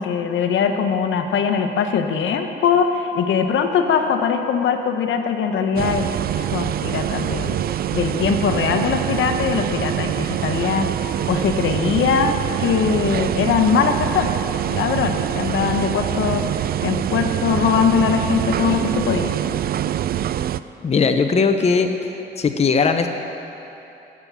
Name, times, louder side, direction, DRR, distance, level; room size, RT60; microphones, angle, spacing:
voice 1, 0.0-6.0 6.4-14.4 14.7-19.4, left 6 dB, 75° left, 6 dB, 1.1 m, -21 dB
sound 1, 5.8-20.6, right 11 dB, 50° right, 0.4 m, -24 dB
voice 2, 20.8-21.9 22.4-23.1, left 5 dB, 30° left, 6 dB, 0.8 m, -18 dB
17.0 x 7.0 x 7.4 m, 3.0 s
cardioid pair, 90°, 20 cm